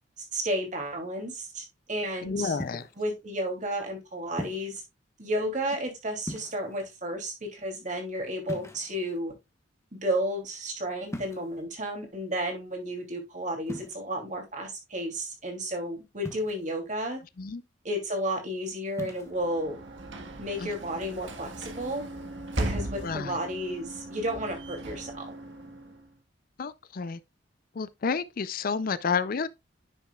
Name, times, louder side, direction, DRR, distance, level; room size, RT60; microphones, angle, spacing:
voice 1, 0.3-2.6 3.0-4.8 5.2-9.3 9.9-17.2 17.8-19.8 20.4-22.0 22.6-25.2, right 1 dB, 40° right, 2.8 m, -32 dB
voice 2, 2.2-2.8 17.4-17.6 20.6-20.7 23.0-23.3 26.6-27.2 27.8-29.5, left 5 dB, 50° left, 0.4 m, -30 dB
sound 1, 2.6-3.0 4.4-4.8 6.2-6.8 8.5-9.2 11.1-11.6 13.7-13.9 16.2-16.8 18.9-19.3, left 1 dB, 15° left, 1.3 m, -39 dB
Sliding door / Slam, 19.1-26.2, right 1 dB, 75° right, 1.5 m, -37 dB
10.0 x 6.2 x 2.3 m
head